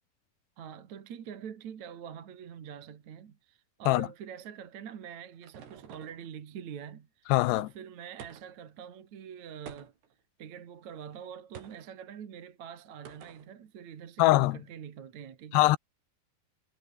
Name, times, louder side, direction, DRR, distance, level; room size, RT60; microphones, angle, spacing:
voice 1, 0.6-9.9 10.4-15.7, right 8 dB, 50° right, 3.1 m, -45 dB
sound 1, 4.8-6.3 8.2-8.7 9.7-10.2 11.5-11.9 13.1-13.5, right 7 dB, 75° right, 5.5 m, -50 dB
voice 2, 7.3-7.7 14.2-14.6 15.5-15.8, left 18 dB, 85° left, 3.0 m, -22 dB
omnidirectional pair, 4.7 m